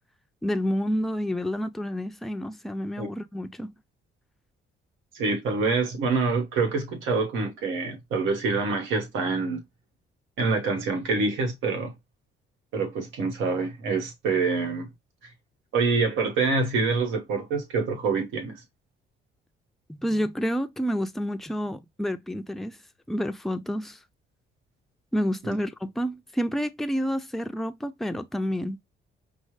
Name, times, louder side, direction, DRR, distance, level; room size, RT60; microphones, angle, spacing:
voice 1, 0.4-3.7 19.9-22.8 23.1-24.0 25.1-28.8, equal, ahead, 0.4 m, -29 dB
voice 2, 5.1-9.6 10.4-11.9 12.7-14.9 15.7-18.6 25.4-25.5, right 4 dB, 85° right, 1.2 m, -26 dB
5.3 x 2.1 x 3.1 m
cardioid pair, 90°, 20 cm